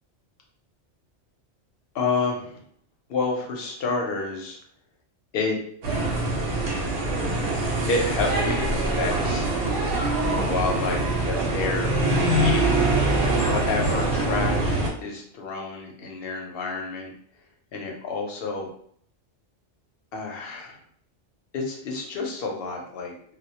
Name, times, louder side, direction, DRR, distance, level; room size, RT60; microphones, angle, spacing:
voice 1, 1.9-2.6 3.1-4.6 5.3-5.6 5.9-6.2 7.9-9.5 10.3-12.0 12.3-12.9 13.4-17.1 17.7-18.7 20.1-20.8 21.5-23.1, left 3 dB, 65° left, 1 dB, 0.7 m, -29 dB
sound 1, 5.8-14.9, right 2 dB, 80° right, 0.9 m, -24 dB
2.1 x 2.1 x 2.7 m, 0.62 s
omnidirectional pair, 1.2 m